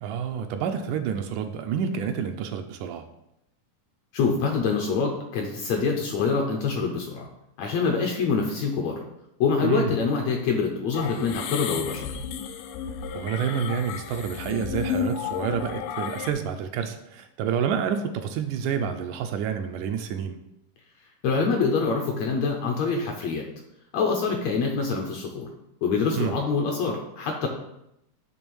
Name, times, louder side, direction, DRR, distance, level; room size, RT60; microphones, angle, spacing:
voice 1, 0.0-3.1 9.6-10.0 13.0-20.4 26.2-26.4, right 7 dB, 80° right, 6 dB, 2.0 m, -29 dB
voice 2, 4.1-7.3 7.6-9.0 9.4-12.1 21.2-23.5 23.9-25.5 25.8-27.5, left 5 dB, 70° left, 1 dB, 1.7 m, -25 dB
sound 1, 10.9-16.3, left 7 dB, 90° left, 2.2 m, -32 dB
7.0 x 3.4 x 6.2 m, 0.82 s
omnidirectional pair, 3.7 m